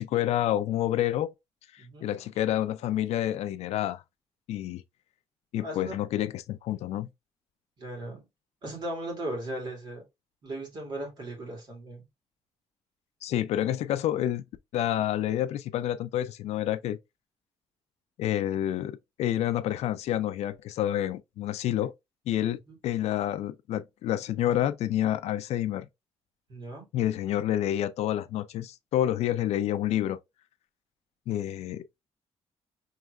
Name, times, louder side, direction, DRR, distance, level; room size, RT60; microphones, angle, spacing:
voice 1, 0.0-1.3 1.7-4.0 4.5-4.8 5.5-7.1 13.2-14.4 14.7-17.0 18.2-21.9 22.3-22.6 22.8-25.9 26.9-30.2 31.3-32.0, left 12 dB, 80° left, 0.4 m, -28 dB
voice 2, 1.8-2.1 5.6-6.0 7.8-8.2 8.6-10.0 10.4-12.1 22.7-22.8 26.5-26.9, right 1 dB, 45° right, 2.0 m, -37 dB
4.8 x 3.2 x 2.3 m
cardioid pair, 175°, 11 cm